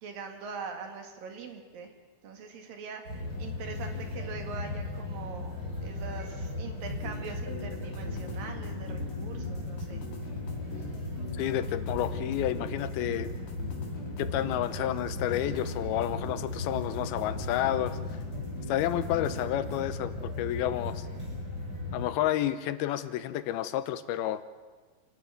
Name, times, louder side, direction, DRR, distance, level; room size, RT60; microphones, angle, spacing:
voice 1, 0.0-1.9 2.2-5.5 5.8-10.1, right 5 dB, 65° right, 4 dB, 3.7 m, -42 dB
sound 1, 3.0-22.1, left 2 dB, 25° right, 6.5 m, -37 dB
sound 2, 7.0-19.9, left 3 dB, 60° left, 3.7 m, -44 dB
voice 2, 11.4-13.3 14.2-18.0 18.7-21.1 21.9-24.4, left 12 dB, 85° left, 13 dB, 2.7 m, -30 dB
27.5 x 12.0 x 9.4 m, 1.4 s
omnidirectional pair, 4.4 m